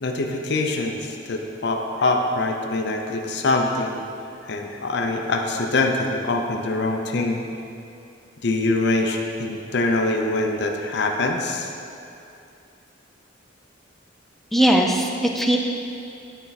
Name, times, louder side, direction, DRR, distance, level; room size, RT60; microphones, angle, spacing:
voice 1, 0.0-4.0 4.5-7.4 8.4-11.7, left 2 dB, 60° left, 3 dB, 0.6 m, -24 dB
voice 2, 14.5-15.6, right 1 dB, ahead, 1 dB, 0.5 m, -19 dB
11.0 x 4.4 x 4.1 m, 2.6 s
head